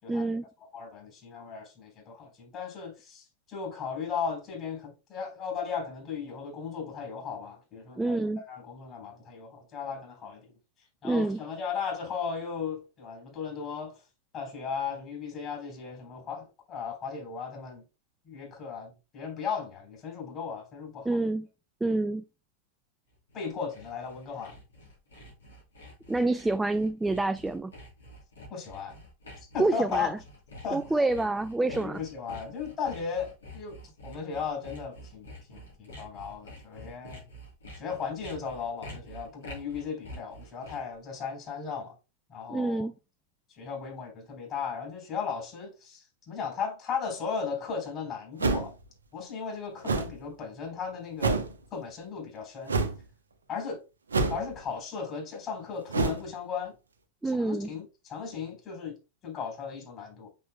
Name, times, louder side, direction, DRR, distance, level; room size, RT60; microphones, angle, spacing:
voice 1, 0.1-0.4 8.0-8.4 11.0-11.4 21.0-21.5 21.8-22.2 26.1-27.7 29.6-30.2 30.7-32.0 42.5-42.9 57.2-57.7, right 2 dB, 10° right, 0.3 m, -27 dB
voice 2, 0.7-10.5 11.0-13.9 14.3-17.8 18.3-21.1 23.3-24.5 28.5-29.0 29.4-30.1 30.6-30.8 31.7-37.2 37.8-42.0 42.3-42.9 43.6-48.7 49.1-52.7 53.5-53.8 54.3-56.7 57.2-58.9 59.2-60.3, left 6 dB, 30° left, 4.0 m, -36 dB
Sawing, 23.1-41.0, equal, 70° left, 3.7 m, -48 dB
sound 1, 48.4-48.8 49.8-50.1 51.2-51.5 52.7-53.0 54.1-54.6 55.9-56.2, right 3 dB, 75° right, 0.9 m, -27 dB
6.6 x 6.1 x 2.3 m
figure-of-eight pair, 90°, 0 cm